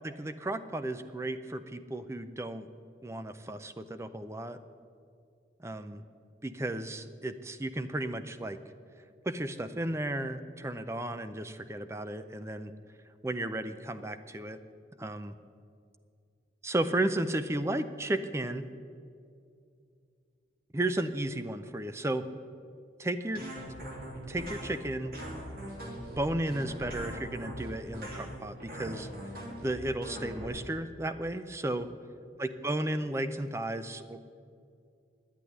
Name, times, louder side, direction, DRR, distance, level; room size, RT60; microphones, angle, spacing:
voice 1, 0.0-2.7 3.0-4.6 5.6-6.0 6.4-8.6 9.2-12.7 13.2-14.6 15.0-15.4 16.6-18.6 20.7-22.3 23.0-23.4 24.3-25.1 26.2-29.1 29.6-31.9 32.4-34.3, right 1 dB, 15° right, 11 dB, 0.5 m, -34 dB
sound 1, 23.3-30.5, equal, 55° right, 2.8 m, -41 dB
11.0 x 8.3 x 9.9 m, 2.4 s
head